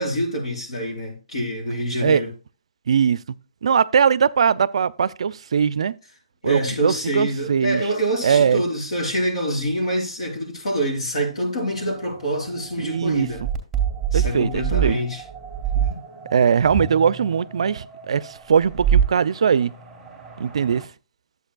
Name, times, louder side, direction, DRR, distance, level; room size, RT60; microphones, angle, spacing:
voice 1, 0.0-2.3 6.4-13.4 14.1-15.2 15.7-16.0, equal, 75° left, 4.5 m, -26 dB
voice 2, 2.9-3.2 3.6-5.9 6.4-7.8 8.2-8.6 12.8-13.5 14.1-15.0 16.3-19.7 20.4-20.8, right 7 dB, 65° right, 0.3 m, -20 dB
sound 1, 11.7-20.8, right 9 dB, ahead, 2.2 m, -27 dB
11.5 x 8.0 x 2.3 m
hypercardioid pair, 145°, 3 cm